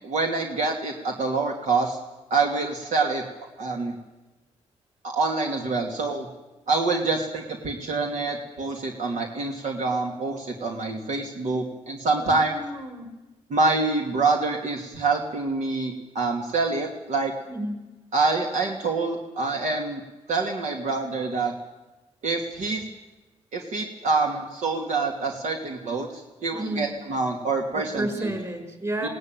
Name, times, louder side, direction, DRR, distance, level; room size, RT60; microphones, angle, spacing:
voice 1, 0.0-2.0 2.3-3.2 3.6-3.9 5.0-6.3 6.7-12.5 13.5-17.3 18.1-20.0 20.3-21.5 22.2-22.8 23.5-28.3 29.0-29.1, right 3 dB, 70° right, 1 dB, 2.6 m, -26 dB
voice 2, 12.2-13.1 17.5-17.9 26.5-27.0 27.7-29.1, right 1 dB, 25° right, 5 dB, 5.9 m, -32 dB
21.0 x 17.5 x 9.2 m, 1.1 s
cardioid pair, 90°, 13 cm